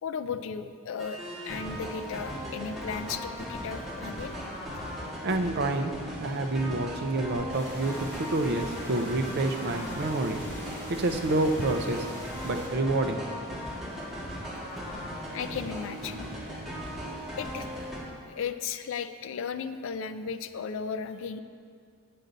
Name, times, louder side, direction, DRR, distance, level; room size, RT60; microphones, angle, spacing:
voice 1, 0.0-4.4 15.3-16.3 17.4-17.7 18.3-21.4, left 6 dB, 65° left, 10 dB, 0.4 m, -35 dB
sound 1, 1.0-18.0, equal, ahead, 1.6 m, -38 dB
voice 2, 5.2-5.9 6.2-10.4 10.9-12.1 12.4-13.2, right 2 dB, 50° right, 5 dB, 0.6 m, -28 dB
sound 2, 7.5-12.7, equal, 15° left, 2.0 m, -43 dB
8.3 x 7.7 x 3.9 m, 2.2 s
head